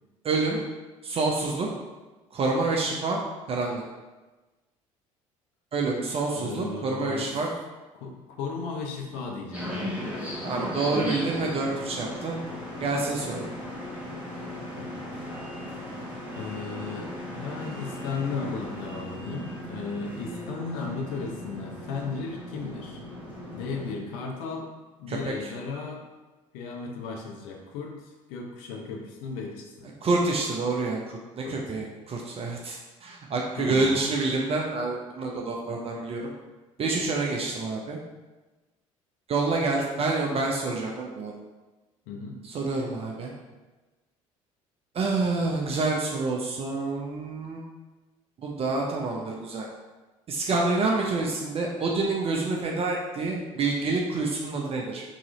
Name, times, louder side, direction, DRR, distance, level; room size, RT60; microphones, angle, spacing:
voice 1, 0.2-0.6 1.0-1.7 2.3-3.2 3.5-3.8 5.7-7.5 10.4-12.4 12.8-13.5 25.1-25.5 30.0-36.3 36.8-38.0 39.3-41.3 42.4-43.3 44.9-47.6 48.4-49.7 50.3-55.0, right 3 dB, 35° right, -1 dB, 0.6 m, -27 dB
voice 2, 6.3-7.3 7.9-9.9 14.8-15.1 16.3-23.0 23.5-24.7 25.0-26.0 26.5-29.9 31.4-31.6 33.5-34.0 42.1-42.4, left 4 dB, 60° left, 0 dB, 0.9 m, -35 dB
sound 1, 9.5-23.9, left 1 dB, 10° right, 1.3 m, -37 dB
4.0 x 3.0 x 3.7 m, 1.2 s
figure-of-eight pair, 55°, 17 cm